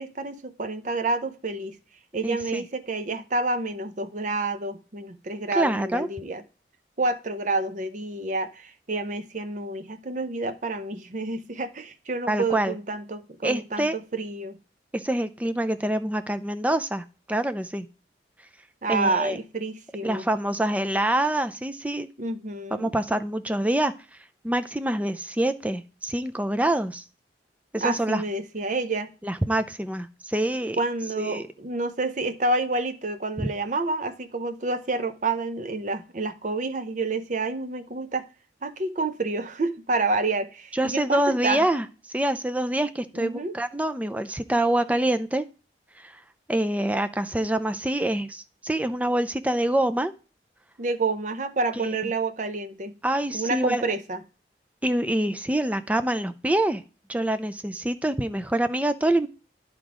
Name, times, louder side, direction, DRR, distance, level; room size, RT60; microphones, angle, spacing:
voice 1, 0.0-1.8 2.1-6.4 7.0-14.6 18.8-20.2 22.2-22.9 27.8-29.1 30.8-38.2 38.6-41.7 43.1-43.5 50.8-53.0 53.3-54.2, right 3 dB, 45° right, 9 dB, 0.7 m, -29 dB
voice 2, 2.2-2.6 5.5-6.1 12.3-12.7 13.4-13.9 14.9-17.9 18.9-19.4 20.0-22.1 22.7-23.9 24.4-27.0 27.7-28.2 29.2-30.8 31.2-31.4 33.4-33.5 40.7-41.9 42.1-45.5 46.0-46.2 46.5-50.1 51.8-52.1 53.0-53.8 54.8-56.8 57.1-59.3, right 1 dB, 10° right, 10 dB, 0.4 m, -26 dB
10.5 x 3.7 x 4.8 m, 0.34 s
head